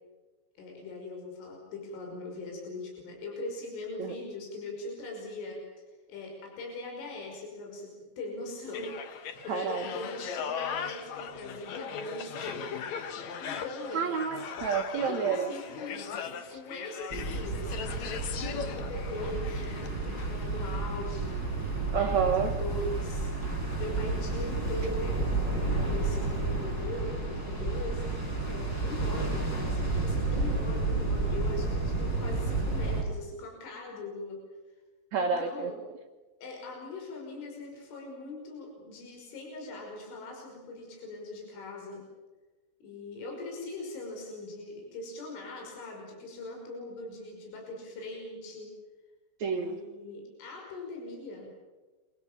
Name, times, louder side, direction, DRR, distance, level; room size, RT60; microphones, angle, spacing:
voice 1, 0.6-12.6 13.4-14.1 14.9-28.1 28.5-34.4 35.2-35.8 36.4-42.0 42.8-48.7 49.5-51.5, left 2 dB, 70° left, 0 dB, 8.0 m, -41 dB
sound 1, 8.7-19.9 20.2-20.4, left 7 dB, 85° left, 1.5 m, -39 dB
voice 2, 9.5-9.8 13.9-15.5 21.9-22.5 35.1-35.7 49.4-49.8, right 6 dB, 90° right, 4 dB, 1.5 m, -29 dB
sound 2, 17.1-33.0, right 3 dB, 20° left, 6.6 m, -31 dB
29.0 x 25.5 x 7.4 m, 1.2 s
omnidirectional pair, 5.8 m